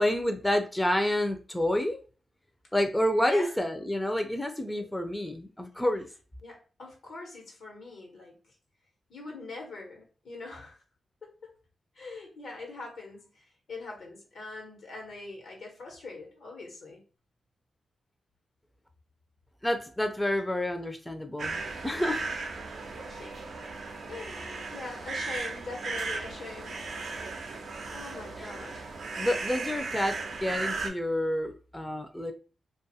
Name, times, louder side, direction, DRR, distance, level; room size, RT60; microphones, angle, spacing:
voice 1, 0.0-2.0 2.7-6.1 19.6-22.2 28.4-28.5 29.2-32.3, left 1 dB, 10° left, 5 dB, 0.5 m, -29 dB
voice 2, 3.2-3.6 6.4-8.4 9.1-10.8 11.9-13.3 13.7-17.0 22.1-22.4 23.1-23.4 24.1-27.2 27.9-28.8, left 3 dB, 75° left, 1 dB, 1.0 m, -42 dB
sound 1, 21.4-30.9, right 3 dB, 75° right, 0.5 m, -36 dB
2.5 x 2.3 x 2.7 m, 0.36 s
supercardioid pair, 45°, 0 cm